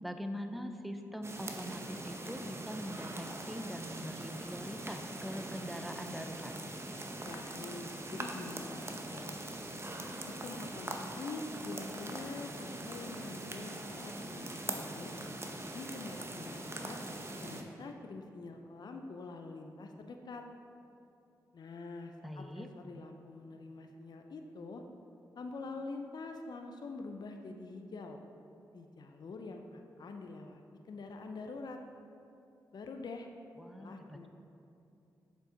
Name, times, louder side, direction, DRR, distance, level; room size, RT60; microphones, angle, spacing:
voice 1, 0.0-6.5 22.2-22.7 33.6-34.3, equal, ahead, 6 dB, 0.6 m, -42 dB
sound 1, 1.2-17.6, right 1 dB, 30° right, 0.8 m, -42 dB
voice 2, 7.2-9.4 10.3-15.1 15.7-17.0 17.4-20.4 21.5-24.8 25.4-28.2 28.7-30.6 30.9-31.8 32.7-33.3 33.8-34.3, left 3 dB, 55° left, 4 dB, 0.5 m, -45 dB
6.8 x 4.6 x 3.9 m, 2.7 s
supercardioid pair, 40°, 8 cm